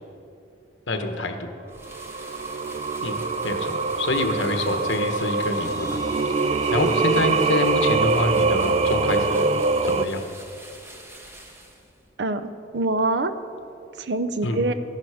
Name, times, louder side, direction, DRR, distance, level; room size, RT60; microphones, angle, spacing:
voice 1, 0.9-1.5 3.0-6.0 6.3-9.5 9.8-10.2 14.4-14.6, left 2 dB, 85° left, 6 dB, 1.2 m, -26 dB
sound 1, 1.7-12.1, right 1 dB, 15° right, 1.2 m, -45 dB
Singing, 1.9-10.1, right 4 dB, 30° right, 0.3 m, -24 dB
Crash cymbal, 4.3-9.2, left 2 dB, 20° left, 1.3 m, -47 dB
voice 2, 12.2-13.3 14.0-14.7, right 2 dB, 65° right, 11 dB, 0.6 m, -25 dB
13.5 x 11.5 x 5.0 m, 2.6 s
head